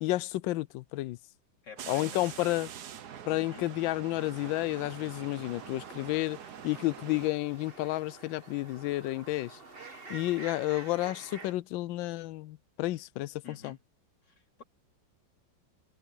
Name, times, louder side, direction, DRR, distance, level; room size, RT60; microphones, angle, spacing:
voice 1, 0.0-1.2 1.9-2.7 3.3-6.4 6.6-9.6 10.1-13.8, left 18 dB, 85° left, 1.3 m, -31 dB
voice 2, 1.6-2.5 3.4-3.7 13.4-13.8 14.2-14.6, left 5 dB, 65° left, 4.1 m, -49 dB
sound 1, 1.8-7.3, right 9 dB, 60° right, 1.5 m, -45 dB
sound 2, 4.2-11.5, right 3 dB, 30° right, 2.1 m, -49 dB
omnidirectional pair, 2.0 m